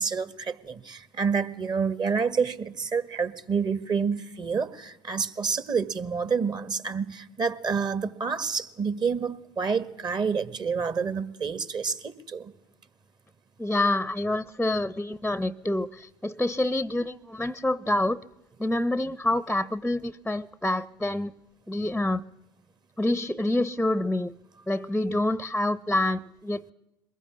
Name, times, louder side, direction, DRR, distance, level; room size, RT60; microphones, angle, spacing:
voice 1, 0.0-12.5, right 5 dB, 40° right, 1.6 m, -28 dB
voice 2, 13.6-18.2 18.6-21.3 21.7-22.2 23.0-24.3 24.7-26.7, left 1 dB, 5° left, 0.7 m, -27 dB
22.5 x 21.0 x 7.4 m
hypercardioid pair, 65°, 12 cm